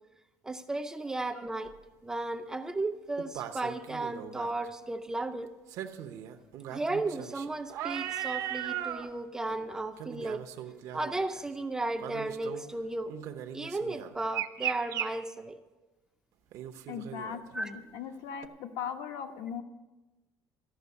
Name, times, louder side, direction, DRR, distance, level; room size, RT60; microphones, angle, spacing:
voice 1, 0.4-1.7 2.0-5.5 6.7-10.4 10.9-13.1 13.5-15.6 17.5-17.7, right 2 dB, 10° right, 7 dB, 0.5 m, -34 dB
sound 1, 1.7-1.8 3.2-4.5 5.7-9.1 9.5-9.6 10.0-11.5 12.0-12.7 13.1-15.1 16.5-17.6 18.4-18.5, right 11 dB, 55° right, 0.8 m, -38 dB
voice 2, 16.9-19.6, left 7 dB, 70° left, 6 dB, 1.1 m, -39 dB
14.0 x 6.2 x 9.4 m, 1.1 s
cardioid pair, 170°, 7 cm